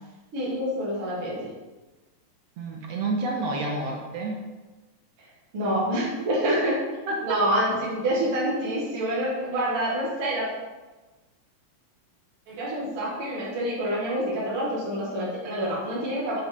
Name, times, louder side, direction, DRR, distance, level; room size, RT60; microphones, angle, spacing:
voice 1, 0.3-1.5 5.2-5.3 5.5-6.8 7.2-10.5 12.5-16.4, right 1 dB, 50° right, -6 dB, 2.6 m, -27 dB
voice 2, 2.6-4.4 6.5-6.6 7.1-7.4, right 2 dB, 70° right, 0 dB, 1.8 m, -29 dB
7.9 x 7.3 x 3.3 m, 1.2 s
omnidirectional pair, 3.4 m